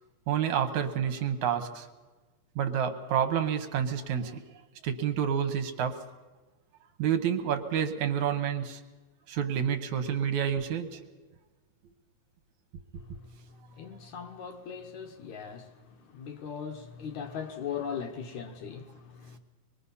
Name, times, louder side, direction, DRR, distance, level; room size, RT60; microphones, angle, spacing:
voice 1, 0.3-1.9 2.6-4.4 4.8-6.0 7.0-8.8 9.3-11.0 12.9-13.0, right 8 dB, 65° right, 2.3 m, -29 dB
voice 2, 12.9-19.4, left 7 dB, 65° left, 2.3 m, -40 dB
25.0 x 22.0 x 5.6 m
omnidirectional pair, 4.0 m